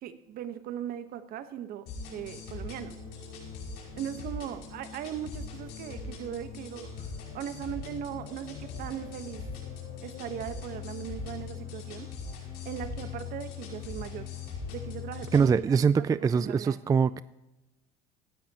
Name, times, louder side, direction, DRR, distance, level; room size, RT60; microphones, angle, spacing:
voice 1, 0.0-3.0 4.0-7.1 7.3-9.5 10.0-12.1 12.6-14.3 14.7-16.0 16.3-16.9, right 10 dB, 60° right, 10 dB, 1.2 m, -39 dB
sound 1, 1.9-15.5, left 5 dB, 75° left, 5.4 m, -40 dB
voice 2, 15.3-17.2, right 6 dB, 20° right, 16 dB, 0.3 m, -23 dB
17.5 x 13.0 x 3.0 m, 0.99 s
supercardioid pair, 90°, 17 cm